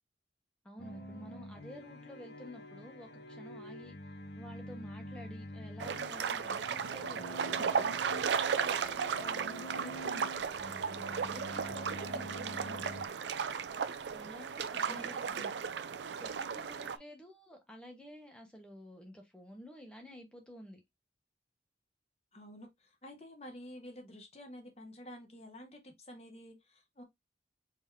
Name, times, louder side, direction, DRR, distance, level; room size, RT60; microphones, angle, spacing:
voice 1, 0.6-4.0 4.4-10.3 10.6-12.2 12.8-12.9 14.1-15.5 16.1-20.8, equal, 5° left, 1.2 m, -51 dB
sound 1, 0.8-13.1, equal, 60° left, 0.9 m, -47 dB
sound 2, 5.8-17.0, right 6 dB, 80° right, 0.4 m, -35 dB
voice 2, 12.0-12.9 14.9-15.6 22.3-27.0, equal, 35° left, 1.1 m, -50 dB
4.4 x 3.7 x 2.7 m
head